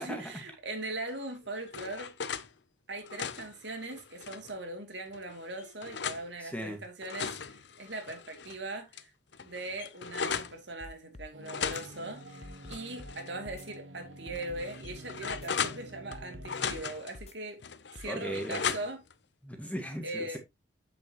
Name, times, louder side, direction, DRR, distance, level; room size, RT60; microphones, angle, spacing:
voice 1, 0.0-2.1 2.9-9.1 9.4-17.6 17.9-19.0 20.0-20.4, right 2 dB, 70° right, 2.8 m, -40 dB
sound 1, 1.2-2.5 2.9-4.6 5.1-6.3 6.8-8.6 8.9-9.0 9.3-10.6 11.4-13.3 13.6-13.7 14.4-16.2 16.5-17.1 17.6-19.1, left 6 dB, 65° left, 0.7 m, -37 dB
voice 2, 6.4-6.8 18.0-18.7 19.4-20.4, equal, 5° left, 1.8 m, -37 dB
sound 2, 10.8-11.3 11.6-11.8 12.4-13.2 13.5-13.7 14.3-15.0 15.3-15.5 16.1-16.8 17.1-17.4 18.0-18.1, left 2 dB, 35° left, 0.5 m, -47 dB
sound 3, 11.3-16.8, right 2 dB, 90° right, 1.5 m, -49 dB
8.4 x 7.0 x 3.0 m
head